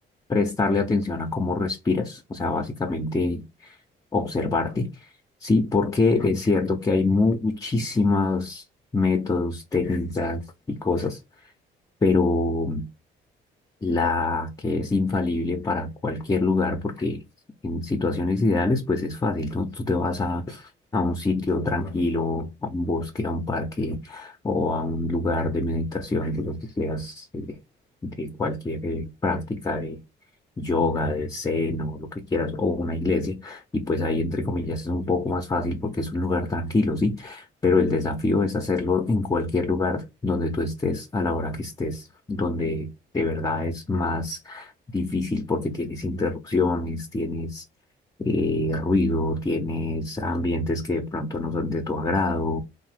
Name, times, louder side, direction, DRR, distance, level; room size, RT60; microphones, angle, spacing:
voice 1, 0.3-3.8 4.1-5.1 5.4-8.6 8.9-10.4 10.7-11.5 12.0-12.9 13.8-17.2 17.6-27.6 28.0-30.0 30.6-42.9 43.1-47.6 48.2-52.6, left 3 dB, 20° left, 0.5 m, -25 dB
2.7 x 2.0 x 3.1 m
cardioid pair, 90°, 20 cm